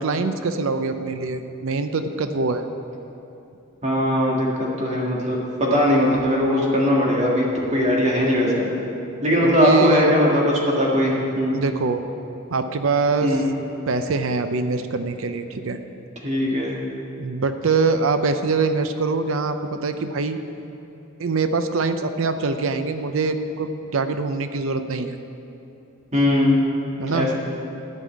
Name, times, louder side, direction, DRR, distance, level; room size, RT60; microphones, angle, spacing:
voice 1, 0.0-2.6 9.4-10.1 11.5-12.0 12.5-13.4 13.9-15.8 17.2-20.4 21.2-25.1 27.0-27.3, right 4 dB, 70° right, 9 dB, 0.6 m, -23 dB
voice 2, 3.8-8.7 9.2-10.4 10.8-11.6 13.2-13.4 16.2-16.8 26.1-26.6 27.1-27.3, equal, 30° right, -3 dB, 1.8 m, -20 dB
12.0 x 5.6 x 8.6 m, 2.9 s
head